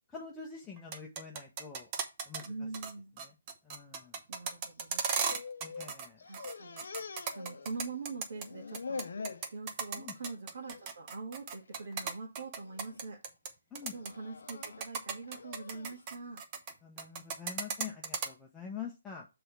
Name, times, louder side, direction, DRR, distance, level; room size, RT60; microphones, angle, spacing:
voice 1, 0.1-1.9 2.2-2.4 3.2-3.3 3.6-4.2 5.6-6.2 9.9-10.1 13.7-13.9 16.8-19.3, left 7 dB, 10° left, 0.9 m, -45 dB
sound 1, 0.8-2.5 2.7-2.9 3.2-6.1 6.3-8.5 8.7-13.5 13.8-14.1 14.5-16.7 17.0-18.3, right 6 dB, 25° right, 1.0 m, -36 dB
voice 2, 2.4-3.1 4.3-5.4 6.2-6.8 7.3-9.1 9.5-13.2 13.9-16.4, right 3 dB, 60° right, 1.6 m, -43 dB
sound 2, 4.9-5.9 6.2-8.1 8.3-9.5 10.0-10.3 10.7-10.9 11.7-12.1 12.6-13.0 13.8-16.0, left 5 dB, 70° left, 0.7 m, -45 dB
6.2 x 3.4 x 5.9 m
hypercardioid pair, 155°, 0 cm